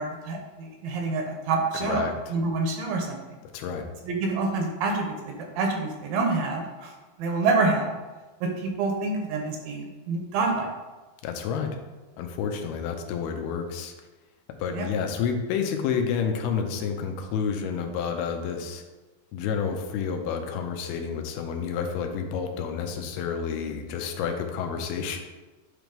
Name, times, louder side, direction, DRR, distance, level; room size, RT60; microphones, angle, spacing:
voice 1, 0.0-2.0 2.3-3.2 4.1-6.9 7.2-7.9 8.4-10.7 14.7-14.9, right 3 dB, 80° right, 2 dB, 2.5 m, -27 dB
voice 2, 1.8-2.1 3.5-3.9 11.2-11.8 12.2-13.9 14.6-18.8 19.3-25.2, left 6 dB, 85° left, 4 dB, 2.7 m, -29 dB
8.7 x 3.1 x 5.2 m, 1.2 s
omnidirectional pair, 4.4 m